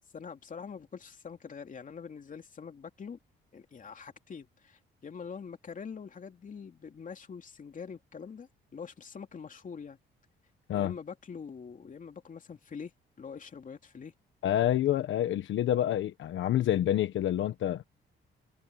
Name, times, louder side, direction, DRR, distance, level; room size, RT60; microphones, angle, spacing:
voice 1, 0.1-3.2 3.5-10.0 10.7-12.9 13.2-14.1, left 6 dB, 40° left, 2.9 m, -44 dB
voice 2, 14.4-17.8, left 12 dB, 75° left, 1.3 m, -28 dB
cardioid pair, 90°, 20 cm